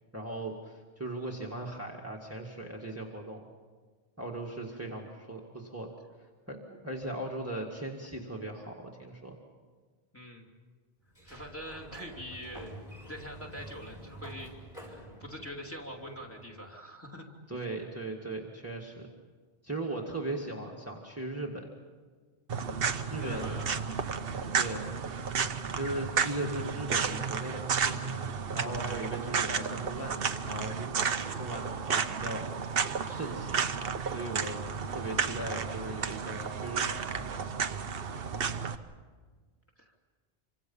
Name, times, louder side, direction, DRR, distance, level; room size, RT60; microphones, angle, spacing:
voice 1, 0.1-3.4 4.2-5.9 6.5-6.6 6.8-9.4 17.5-19.1 19.6-21.7 23.1-23.6 24.5-24.9 25.8-28.0 28.5-32.5 33.1-33.6 34.1-34.6 34.9-37.5, right 2 dB, 10° right, -1 dB, 1.9 m, -38 dB
voice 2, 10.1-10.5 11.2-14.5 14.9-17.3 17.6-17.7 23.2-23.8 38.6-38.9 39.8-39.9, equal, 10° left, 1 dB, 3.0 m, -44 dB
Sliding door, 11.1-16.7, right 1 dB, 30° left, 5.5 m, -48 dB
sound 1, 22.5-38.8, right 6 dB, 55° right, 1.1 m, -32 dB
27.5 x 25.5 x 5.5 m, 1.5 s
omnidirectional pair, 1.2 m